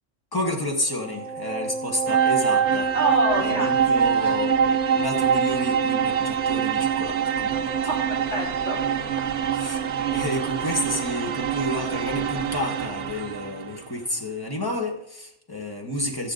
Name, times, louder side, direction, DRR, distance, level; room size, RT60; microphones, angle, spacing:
voice 1, 0.3-2.9 3.4-4.5 4.9-7.7 9.6-9.8 10.1-16.3, left 1 dB, 20° left, 0 dB, 1.6 m, -30 dB
sound 1, 0.9-13.7, right 7 dB, 70° right, 1.0 m, -24 dB
voice 2, 2.9-4.4 7.8-8.8 9.3-9.5, right 1 dB, 60° left, -6 dB, 3.8 m, -29 dB
13.0 x 8.7 x 3.9 m, 0.81 s
omnidirectional pair, 1.3 m